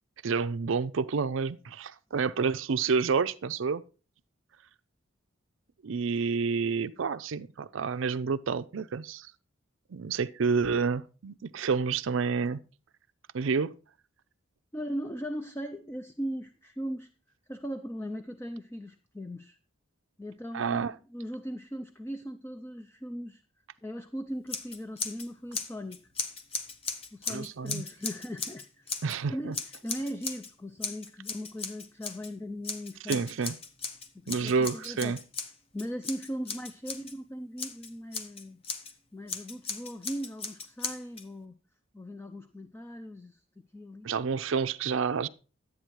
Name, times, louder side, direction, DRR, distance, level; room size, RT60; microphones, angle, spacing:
voice 1, 0.2-3.8 5.8-9.3 9.9-12.6 13.3-13.7 20.5-20.9 27.3-27.8 29.0-29.5 33.1-33.5 34.3-35.2 44.0-45.3, right 5 dB, 75° right, 0.5 m, -29 dB
voice 2, 14.7-17.1 17.5-19.6 20.2-20.8 21.1-23.4 23.8-26.0 27.1-29.0 29.3-33.3 34.1-35.2 35.7-38.6 39.1-41.5 41.9-43.4 43.7-44.1, equal, 10° left, 0.5 m, -39 dB
Scissors, 24.5-25.3 25.5-29.2 29.5-30.5 30.8-32.3 32.6-37.1 37.6-38.9 39.3-41.2, left 4 dB, 30° left, 1.1 m, -37 dB
11.5 x 8.6 x 4.6 m
head